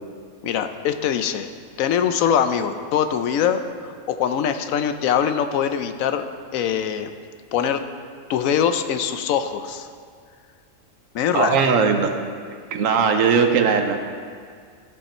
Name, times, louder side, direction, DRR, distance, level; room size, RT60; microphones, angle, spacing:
voice 1, 0.4-1.5 1.8-6.2 6.5-7.1 7.5-7.8 8.3-9.9 11.1-11.7, left 8 dB, 80° left, 9 dB, 1.0 m, -23 dB
voice 2, 11.3-12.1 12.7-14.0, right 6 dB, 75° right, 5 dB, 1.2 m, -19 dB
14.5 x 5.5 x 4.3 m, 2.1 s
omnidirectional pair, 1.4 m